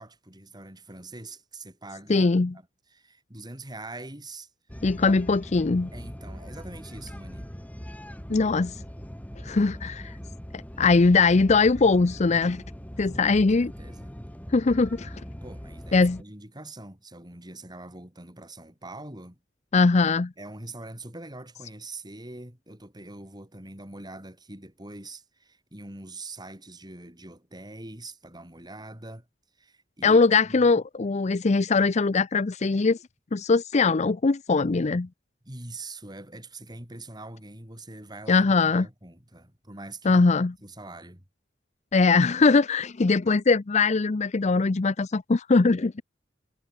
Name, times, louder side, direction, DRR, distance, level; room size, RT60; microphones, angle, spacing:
voice 1, 0.0-4.5 4.8-5.2 5.9-7.5 13.0-14.2 15.4-19.4 20.4-29.3 29.6-30.2 30.5-30.7 35.4-40.3 40.6-41.2, right 2 dB, 20° right, 5.9 m, -43 dB
voice 2, 2.1-2.5 4.8-5.9 8.3-8.8 9.4-10.1 10.8-12.6 13.0-13.7 14.5-15.1 15.9-16.2 19.7-20.3 30.0-33.0 33.3-35.1 38.3-38.9 40.1-40.5 41.9-46.0, left 4 dB, 35° left, 0.5 m, -21 dB
sound 1, 4.7-16.2, equal, 10° left, 1.4 m, -41 dB
head